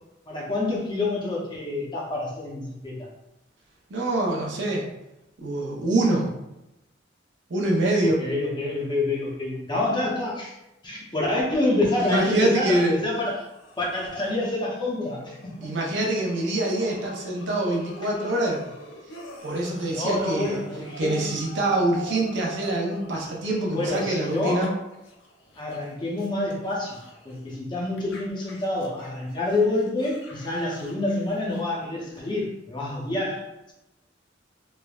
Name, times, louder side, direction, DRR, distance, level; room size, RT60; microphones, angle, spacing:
voice 1, 0.3-3.0 8.2-10.5 10.8-13.5 13.8-15.7 19.9-21.3 23.7-24.8 25.6-27.0 27.2-33.4, left 2 dB, 25° left, -3 dB, 0.6 m, -27 dB
voice 2, 3.9-4.8 5.4-6.3 7.5-8.3 12.0-13.0 15.6-18.6 19.4-20.6 21.0-24.7, right 1 dB, 65° right, -2 dB, 0.6 m, -25 dB
sound 1, 13.1-24.7 24.9-27.6 28.0-32.5, equal, 80° left, 0.6 m, -45 dB
3.2 x 2.0 x 2.3 m, 0.91 s
head